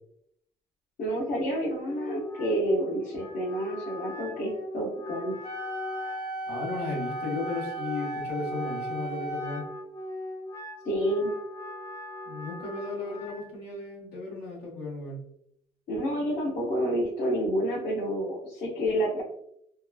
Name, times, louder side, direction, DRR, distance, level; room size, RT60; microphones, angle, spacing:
voice 1, 1.0-5.3 10.8-11.3 15.9-19.2, equal, 60° left, -7 dB, 0.9 m, -29 dB
Wind instrument woodwind instrument, 1.8-13.5, left 1 dB, 15° left, 0.3 m, -41 dB
Wind instrument woodwind instrument 2, 5.4-9.6, right 1 dB, 40° left, 1.5 m, -35 dB
voice 2, 6.5-9.6 12.2-15.2, left 3 dB, 75° left, -4 dB, 1.4 m, -35 dB
2.9 x 2.2 x 2.3 m, 0.73 s
cardioid pair, 110°, 17 cm